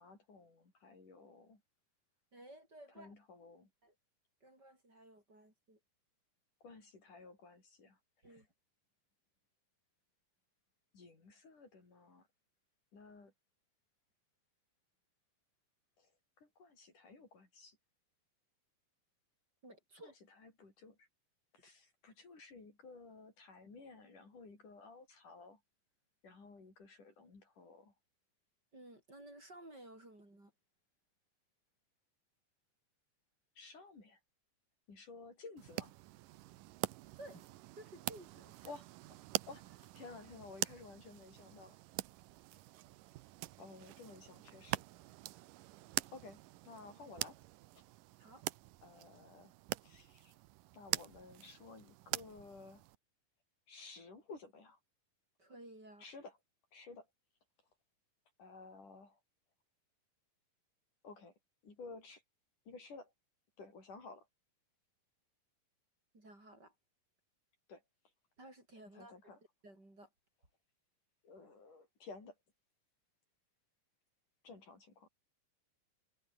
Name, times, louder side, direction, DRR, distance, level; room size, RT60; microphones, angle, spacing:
voice 1, 0.0-1.6 3.0-3.7 6.6-8.4 10.9-12.3 12.9-13.3 16.0-16.1 16.4-17.8 20.0-21.1 21.5-25.6 26.2-27.9 33.6-34.2 34.9-35.9 38.6-38.8 39.5-41.8 43.6-44.8 46.1-47.4 47.7-47.8 48.8-49.5 49.8-50.3 50.7-52.9 53.7-54.8 56.0-56.4 56.7-57.1 58.4-59.2 61.0-61.4 61.6-62.2 62.7-63.1 63.6-64.3 67.7-67.8 68.9-69.4 71.2-72.4 74.4-75.1, left 3 dB, 60° left, 7.9 m, -54 dB
voice 2, 2.3-3.1 3.8-3.9 4.4-5.8 8.2-8.5 19.6-20.1 28.7-30.5 37.2-37.5 37.7-38.7 48.2-48.4 55.4-56.1 66.1-66.7 68.4-69.1 69.6-70.1, right 1 dB, 25° right, 8.2 m, -55 dB
sound 1, 35.6-53.0, right 18 dB, 80° right, 2.3 m, -44 dB
omnidirectional pair, 4.0 m